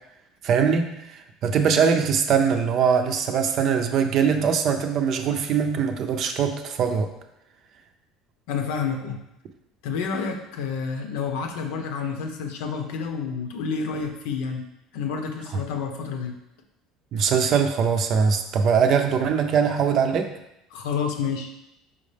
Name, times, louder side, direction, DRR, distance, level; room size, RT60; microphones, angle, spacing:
voice 1, 0.4-7.1 17.1-20.3, right 6 dB, 40° right, 6 dB, 0.5 m, -22 dB
voice 2, 8.5-9.2 9.8-14.6 14.9-16.3 20.7-21.5, left 5 dB, 80° left, 4 dB, 0.9 m, -29 dB
5.7 x 5.1 x 3.4 m, 0.84 s
cardioid pair, 170°, 0 cm